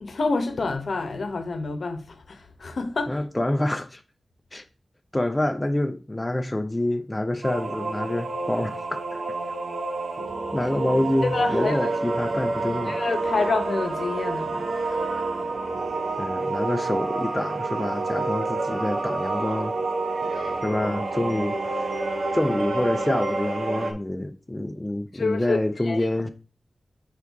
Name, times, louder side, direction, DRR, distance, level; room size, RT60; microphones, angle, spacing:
voice 1, 0.0-3.2 11.2-11.9 12.9-14.7 25.1-26.0, left 3 dB, 70° left, 0.8 m, -28 dB
voice 2, 3.1-4.0 4.5-4.6 5.1-9.2 10.5-13.0 16.2-19.7 20.6-21.9 22.3-26.3, left 1 dB, 15° left, 0.5 m, -27 dB
sound 1, 7.4-23.9, right 3 dB, 80° right, 0.9 m, -28 dB
6.2 x 4.8 x 3.4 m
wide cardioid pair, 105°, 0 cm